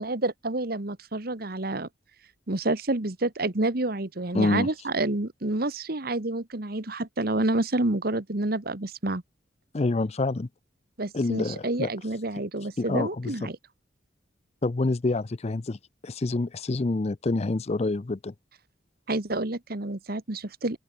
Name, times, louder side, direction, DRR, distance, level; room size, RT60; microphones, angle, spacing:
voice 1, 0.0-1.9 2.5-9.2 11.0-13.6 19.1-20.8, right 2 dB, 55° right, 1.6 m, -28 dB
voice 2, 4.3-4.7 9.7-10.5 11.1-11.9 12.8-13.5 14.6-15.8 16.0-18.3, left 2 dB, 35° left, 0.5 m, -27 dB
open air
head